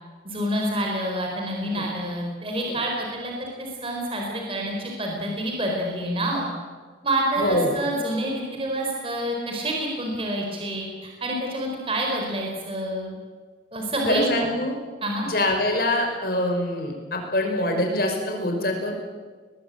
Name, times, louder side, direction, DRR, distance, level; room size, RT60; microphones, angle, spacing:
voice 1, 0.2-6.5 7.0-13.2 13.7-14.2 15.0-15.3, right 1 dB, 30° right, 0 dB, 4.3 m, -28 dB
voice 2, 7.4-7.7 14.1-14.8 15.2-18.9, left 1 dB, 55° left, 3 dB, 5.3 m, -24 dB
22.0 x 21.0 x 8.4 m, 1.5 s
head